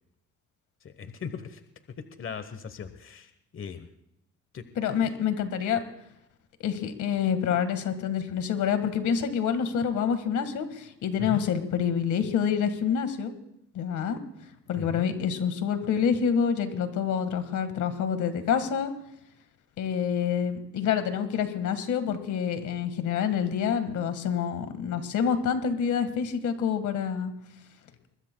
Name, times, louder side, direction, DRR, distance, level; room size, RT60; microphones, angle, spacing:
voice 1, 0.8-1.6 2.0-3.9 4.5-4.6 11.2-11.4 14.8-15.1, left 6 dB, 45° left, 10 dB, 1.1 m, -38 dB
voice 2, 4.7-5.8 6.6-13.3 13.7-14.2 14.7-18.9 19.8-27.3, left 7 dB, 75° left, 9 dB, 1.8 m, -27 dB
23.5 x 21.0 x 2.3 m, 0.82 s
cardioid pair, 90°, 30 cm